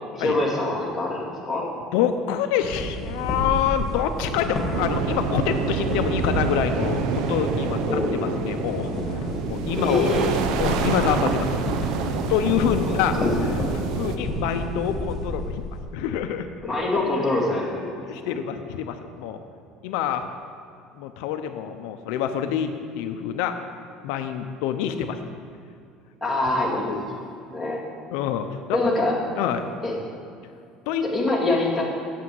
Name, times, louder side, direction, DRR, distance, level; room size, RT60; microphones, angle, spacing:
voice 1, 0.1-1.6 7.9-8.5 9.8-10.3 13.2-13.3 16.6-18.0 18.2-18.4 26.2-27.0 27.5-27.8 28.7-29.1 29.8-29.9 31.0-31.8, left 2 dB, ahead, -6 dB, 2.6 m, -24 dB
voice 2, 1.9-8.9 9.5-10.1 10.6-11.9 12.3-13.2 13.4-13.6 13.9-15.6 15.9-16.5 18.1-19.4 19.8-20.3 21.0-22.7 22.9-23.6 24.0-25.2 26.9-27.0 28.1-28.8 29.4-29.7 30.9-31.1, left 9 dB, 75° left, 7 dB, 0.6 m, -26 dB
sound 1, 2.6-8.1 8.4-15.8, left 1 dB, 25° left, 2.8 m, -31 dB
sound 2, 4.7-14.2, right 5 dB, 60° right, 0.7 m, -27 dB
8.5 x 8.1 x 7.7 m, 2.4 s
cardioid pair, 155°, 0 cm